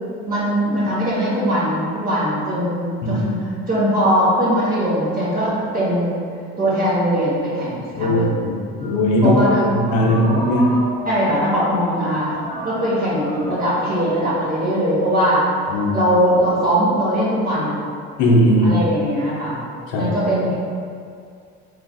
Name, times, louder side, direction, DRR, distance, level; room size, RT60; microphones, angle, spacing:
voice 1, 0.3-6.1 6.6-8.4 9.2-10.1 11.0-15.4 15.9-17.8 18.6-19.6 19.9-20.5, equal, 30° right, -9 dB, 1.0 m, -20 dB
voice 2, 7.9-9.4 9.7-10.9 15.7-16.0 18.2-18.8 19.9-20.1, equal, 75° left, -1 dB, 0.6 m, -18 dB
Ringtone, 8.8-16.3, equal, 60° right, 0.9 m, -34 dB
3.2 x 2.4 x 2.2 m, 2.3 s
supercardioid pair, 75°, 32 cm